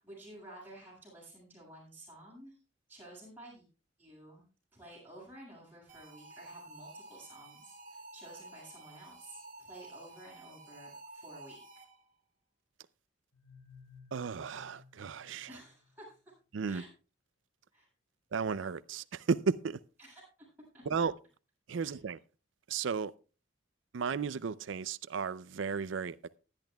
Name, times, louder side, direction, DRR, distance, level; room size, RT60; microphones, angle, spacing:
voice 1, 0.0-2.6 2.9-3.7 4.0-4.4 4.7-11.6 15.5-16.3 16.7-16.9 17.7-17.9 20.0-20.5 20.7-20.8 21.7-22.0, right 1 dB, 10° right, 7.6 m, -52 dB
sound 1, 5.9-12.2, right 2 dB, 45° right, 2.1 m, -52 dB
sound 2, 13.3-16.2, left 5 dB, 85° left, 5.6 m, -57 dB
voice 2, 14.1-15.5 16.5-16.8 18.3-19.8 20.9-21.1 21.7-22.2 22.7-23.1 23.9-26.4, right 5 dB, 80° right, 0.4 m, -34 dB
19.5 x 10.5 x 2.3 m
head